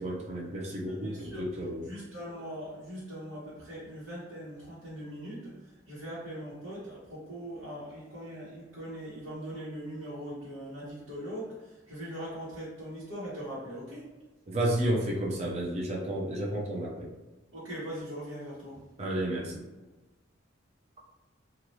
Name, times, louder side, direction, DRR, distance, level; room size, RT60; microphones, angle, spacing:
voice 1, 0.0-1.9 14.5-17.1 19.0-19.6, right 1 dB, 35° right, -3 dB, 0.5 m, -31 dB
voice 2, 0.9-1.4 1.8-14.1 17.5-18.8, equal, 90° right, -11 dB, 1.2 m, -41 dB
3.2 x 2.4 x 2.7 m, 1.1 s
head